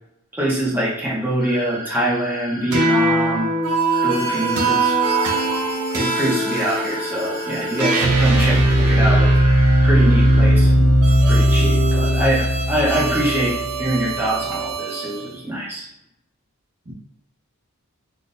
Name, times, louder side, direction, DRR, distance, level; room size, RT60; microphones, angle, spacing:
voice 1, 0.3-3.5 4.0-5.0 5.9-9.5 9.8-10.9 11.3-15.9, right 1 dB, 10° right, -6 dB, 0.9 m, -24 dB
sound 1, 1.4-2.9 3.9-5.4 6.4-7.9 8.9-10.4, right 1 dB, 20° left, 0.5 m, -36 dB
sound 2, 2.7-15.2, right 1 dB, 85° right, 0.6 m, -18 dB
voice 2, 8.3-9.3 16.8-16.9, equal, 40° right, -4 dB, 0.8 m, -31 dB
3.9 x 2.5 x 2.5 m, 0.81 s
head